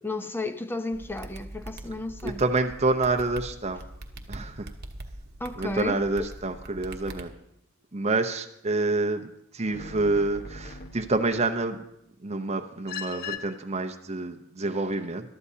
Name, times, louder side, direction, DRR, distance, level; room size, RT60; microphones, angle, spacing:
voice 1, 0.0-2.4 5.4-6.0, left 2 dB, 10° left, 0.6 m, -33 dB
sound 1, 0.9-7.2, right 1 dB, 50° right, 1.1 m, -42 dB
voice 2, 2.2-3.8 4.3-4.7 5.6-7.3 7.9-11.8 12.2-15.3, right 3 dB, 30° right, 0.7 m, -28 dB
sound 2, 9.6-11.5 12.9-13.4, left 5 dB, 50° left, 1.2 m, -39 dB
21.5 x 12.5 x 2.8 m
head